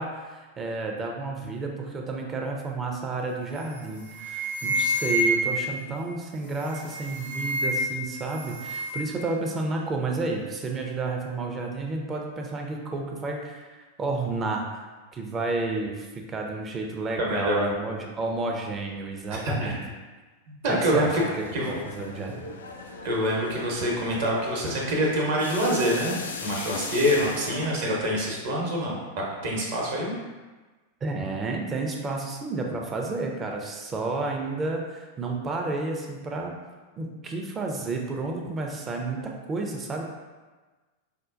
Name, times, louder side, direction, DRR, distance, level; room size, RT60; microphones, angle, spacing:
voice 1, 0.0-13.7 14.0-14.8 15.1-19.8 20.7-21.1 21.4-22.4 31.0-36.5 37.0-40.1, right 3 dB, 25° right, 1 dB, 0.5 m, -31 dB
sound 1, 3.6-3.8 4.1-5.7 6.5-8.0 8.3-9.1, equal, 85° left, 1.1 m, -28 dB
voice 2, 17.2-17.7 19.4-19.8 20.5-21.2 21.5-21.7 23.0-29.0 29.4-30.1, equal, 55° right, -2 dB, 0.9 m, -26 dB
sound 2, 20.6-27.7, left 4 dB, 70° left, 0.3 m, -38 dB
5.3 x 2.1 x 2.5 m, 1.3 s
figure-of-eight pair, 90°, 0 cm